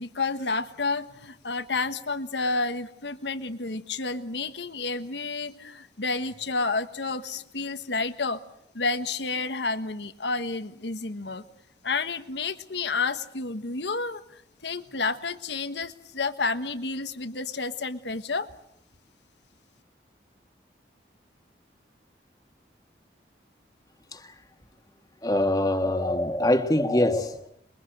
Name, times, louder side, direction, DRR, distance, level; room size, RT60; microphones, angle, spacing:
voice 1, 0.0-8.4 8.7-11.4 11.8-18.5, left 3 dB, 80° left, 1.4 m, -30 dB
voice 2, 25.2-27.4, left 1 dB, 20° left, 1.6 m, -23 dB
27.5 x 23.0 x 7.9 m
head